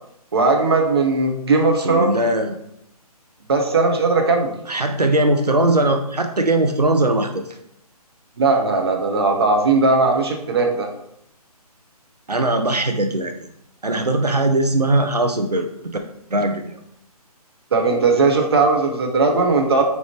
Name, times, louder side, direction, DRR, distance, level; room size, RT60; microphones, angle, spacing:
voice 1, 0.3-2.1 3.5-4.5 8.4-10.9 13.9-14.0 17.7-19.8, right 3 dB, 40° right, 2 dB, 0.8 m, -18 dB
voice 2, 1.8-2.6 4.7-7.6 12.3-13.3 13.8-16.0 16.3-16.8, right 2 dB, 85° right, 5 dB, 0.6 m, -20 dB
4.5 x 4.1 x 2.9 m, 0.76 s
figure-of-eight pair, 145°, 20 cm